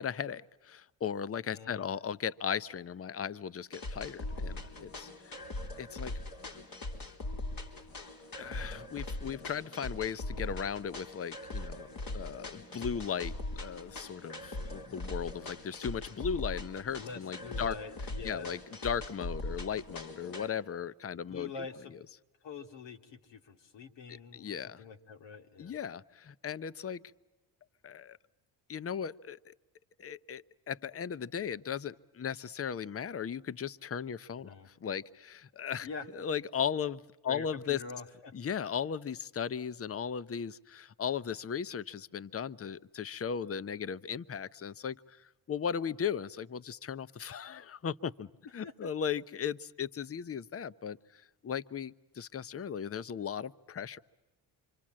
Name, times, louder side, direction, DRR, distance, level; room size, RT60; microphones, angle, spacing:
voice 1, 0.0-5.5 5.8-6.1 8.3-11.9 12.1-17.7 18.2-21.5 24.3-24.8 25.6-27.0 27.8-28.2 28.7-29.5 30.0-34.5 34.8-35.9 36.1-37.8 38.3-48.3 48.5-54.0, left 7 dB, 30° left, 18 dB, 0.8 m, -37 dB
voice 2, 1.5-1.9 16.9-18.6 21.1-21.9 22.4-25.8 34.4-34.7 35.8-36.1 37.3-38.3 48.6-48.9, left 5 dB, 65° left, 6 dB, 2.3 m, -45 dB
sound 1, 3.7-20.5, left 2 dB, 45° left, 3.8 m, -41 dB
27.0 x 25.5 x 7.5 m, 1.1 s
supercardioid pair, 60°, 46 cm